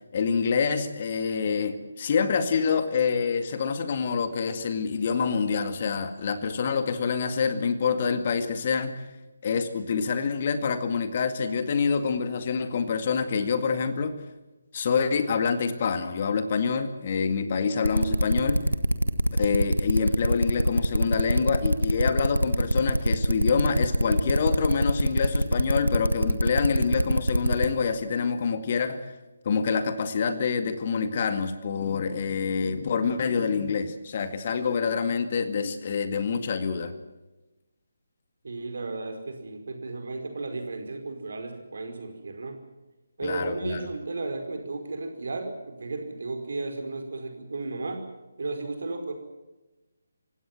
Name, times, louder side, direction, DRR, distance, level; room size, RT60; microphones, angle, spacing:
voice 1, 0.1-9.0 9.4-14.2 14.7-18.7 19.4-29.1 29.5-36.9 43.2-43.9, left 5 dB, 35° left, 10 dB, 2.0 m, -26 dB
sound 1, 17.8-27.7, equal, 85° right, 1.7 m, -23 dB
voice 2, 38.4-42.6 43.2-48.0 48.4-49.1, right 3 dB, 50° right, 5 dB, 5.1 m, -34 dB
28.0 x 17.0 x 7.5 m, 1.1 s
figure-of-eight pair, 145°, 0 cm